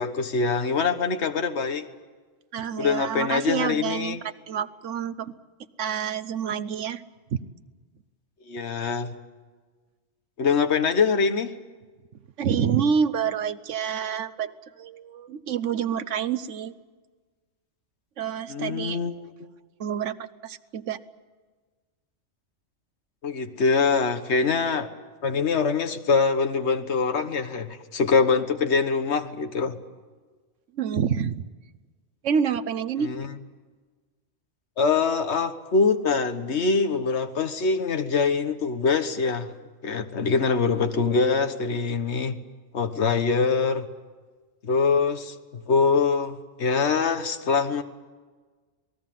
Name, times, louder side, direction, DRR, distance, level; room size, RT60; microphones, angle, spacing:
voice 1, 0.0-1.9 2.8-4.2 8.5-9.1 10.4-11.6 18.5-19.3 23.2-24.9 25.2-29.8 33.0-33.3 34.8-39.5 39.8-42.4 42.7-43.9 44.6-47.8, left 5 dB, 65° left, 8 dB, 1.6 m, -24 dB
voice 2, 2.5-5.3 5.8-7.0 7.3-7.4 12.4-16.8 18.2-19.0 19.8-21.0 30.7-31.4 32.2-33.1, right 7 dB, 85° right, 14 dB, 1.2 m, -28 dB
27.5 x 20.0 x 7.7 m, 1.4 s
omnidirectional pair, 1.2 m